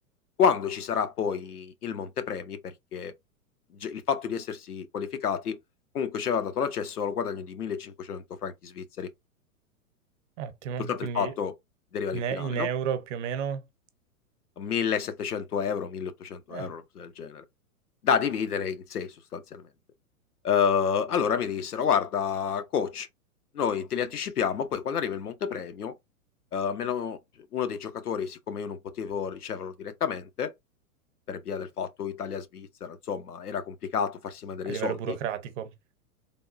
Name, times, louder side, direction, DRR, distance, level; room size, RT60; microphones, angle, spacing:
voice 1, 0.4-3.1 3.7-5.6 5.9-9.1 10.8-11.5 11.9-12.7 14.6-17.4 18.0-19.7 20.4-23.1 23.5-25.9 26.5-27.2 27.5-30.5 31.3-35.2, left 7 dB, 90° left, 0.8 m, -30 dB
voice 2, 10.4-11.3 12.1-13.6 16.5-16.7 34.7-35.7, right 8 dB, 55° right, 0.8 m, -32 dB
3.5 x 2.2 x 2.5 m
hypercardioid pair, 110°, 44 cm